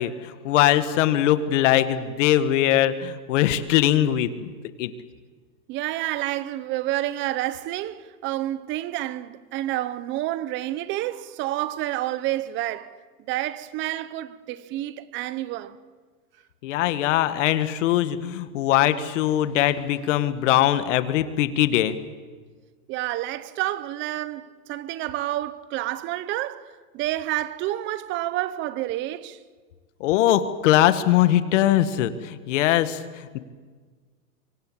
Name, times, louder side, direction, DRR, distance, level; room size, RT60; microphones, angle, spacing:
voice 1, 0.0-4.5 4.8-4.9 16.6-22.0 30.0-33.4, left 12 dB, 55° left, 1.8 m, -21 dB
voice 2, 5.7-13.0 13.3-15.8 22.9-29.4, right 15 dB, 25° right, 0.9 m, -29 dB
26.0 x 24.0 x 7.5 m
supercardioid pair, 150°, 45 cm